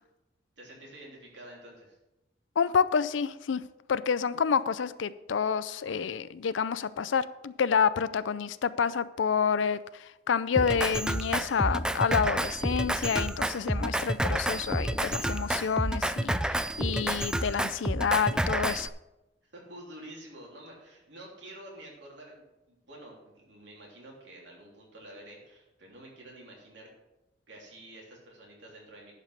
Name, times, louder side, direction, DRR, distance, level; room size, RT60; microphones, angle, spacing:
voice 1, 0.6-2.0 19.4-26.9 27.5-29.1, right 1 dB, 70° right, -2 dB, 3.3 m, -49 dB
voice 2, 2.6-3.6 3.9-18.9, left 6 dB, 90° left, 15 dB, 0.5 m, -28 dB
Drum kit, 10.5-18.9, right 1 dB, 5° right, 0.3 m, -29 dB
11.0 x 5.5 x 6.4 m, 0.96 s
head